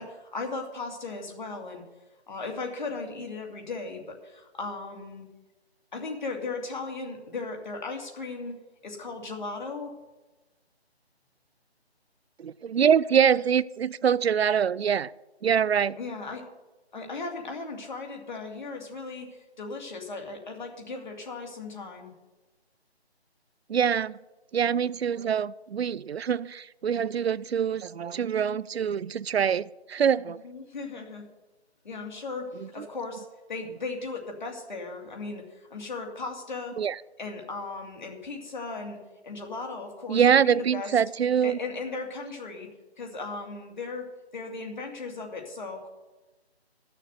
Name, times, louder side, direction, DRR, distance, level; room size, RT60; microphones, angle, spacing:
voice 1, 0.0-1.8 2.3-5.3 5.9-9.9 16.0-16.4 16.9-22.1 30.3-31.3 31.8-36.8 37.2-39.0 39.2-40.9 41.4-42.7 43.0-44.1 44.3-45.9, left 3 dB, 45° left, 2.5 m, -37 dB
voice 2, 12.4-15.1 15.4-16.0 23.7-24.2 24.5-30.4 32.6-32.9 36.8-37.0 40.1-41.6, right 8 dB, 70° right, 0.5 m, -24 dB
12.0 x 6.7 x 8.1 m
figure-of-eight pair, 170°, 32 cm